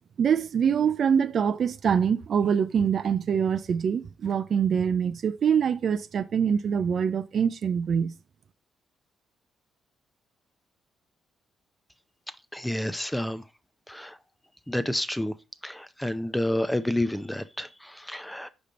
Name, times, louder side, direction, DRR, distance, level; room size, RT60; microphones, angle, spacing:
voice 1, 0.2-8.1, right 7 dB, 55° right, 0.4 m, -24 dB
voice 2, 12.5-13.4 13.9-14.2 14.7-15.3 15.6-18.5, left 1 dB, 5° left, 0.6 m, -29 dB
5.3 x 5.1 x 4.2 m
cardioid pair, 90°, 0 cm